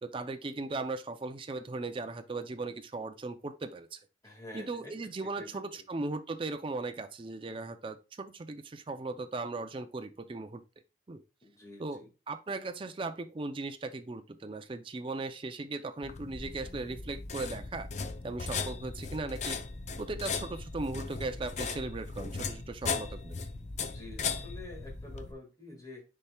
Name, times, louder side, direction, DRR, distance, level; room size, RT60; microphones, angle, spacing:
voice 1, 0.0-4.0 4.5-10.6 11.1-11.2 11.8-17.9 18.2-19.6 20.0-23.4, right 3 dB, 30° right, 0.4 m, -38 dB
voice 2, 4.2-5.8 11.4-12.1 23.8-26.0, left 2 dB, 20° left, 1.8 m, -48 dB
sound 1, 16.0-25.3, left 4 dB, 40° left, 0.5 m, -37 dB
9.9 x 4.3 x 2.3 m
head